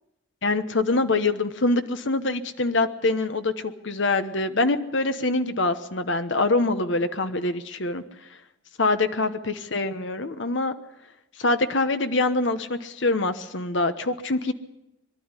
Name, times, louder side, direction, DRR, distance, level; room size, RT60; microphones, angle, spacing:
voice 1, 0.4-8.0 8.8-10.8 11.4-14.5, left 2 dB, 70° left, 9 dB, 1.1 m, -24 dB
23.0 x 12.0 x 9.8 m, 0.90 s
head